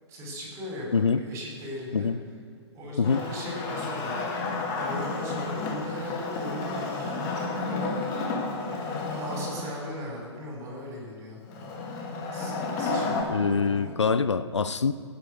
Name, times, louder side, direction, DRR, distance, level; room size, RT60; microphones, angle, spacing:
voice 1, 0.1-2.1 2.7-4.4 4.7-8.2 8.7-11.4 12.3-14.0, left 1 dB, 20° right, -2 dB, 4.8 m, -38 dB
Wood, 3.0-9.8 11.5-13.2, left 3 dB, 25° left, 2.3 m, -31 dB
voice 2, 13.3-14.9, left 5 dB, 75° left, 13 dB, 0.6 m, -24 dB
17.5 x 9.5 x 6.5 m, 2.2 s
figure-of-eight pair, 125°, 15 cm